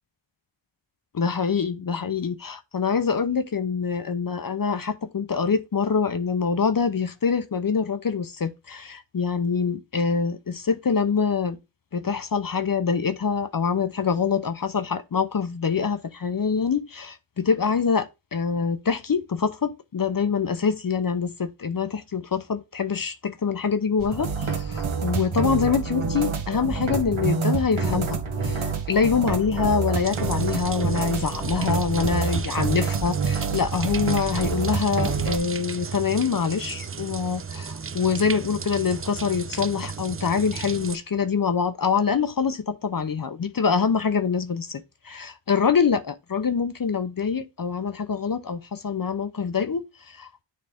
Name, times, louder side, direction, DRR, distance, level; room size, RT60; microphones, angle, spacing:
voice 1, 1.1-11.6 11.9-50.4, left 6 dB, 45° left, 0.7 m, -25 dB
sound 1, 24.0-35.4, right 5 dB, 85° right, 1.3 m, -27 dB
sound 2, 30.0-41.0, right 6 dB, 30° right, 0.5 m, -35 dB
9.4 x 3.2 x 3.5 m
wide cardioid pair, 70°, 48 cm